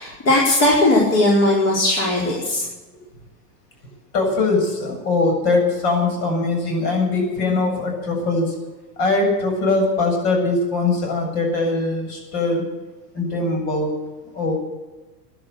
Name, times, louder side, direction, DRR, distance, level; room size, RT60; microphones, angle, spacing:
voice 1, 0.0-2.6, left 1 dB, 30° left, -3 dB, 4.6 m, -18 dB
voice 2, 4.1-8.5 9.0-12.6 13.1-13.9 14.3-14.6, left 3 dB, 50° left, 2 dB, 7.6 m, -21 dB
15.5 x 11.0 x 8.0 m, 1.2 s
hypercardioid pair, 105°, 49 cm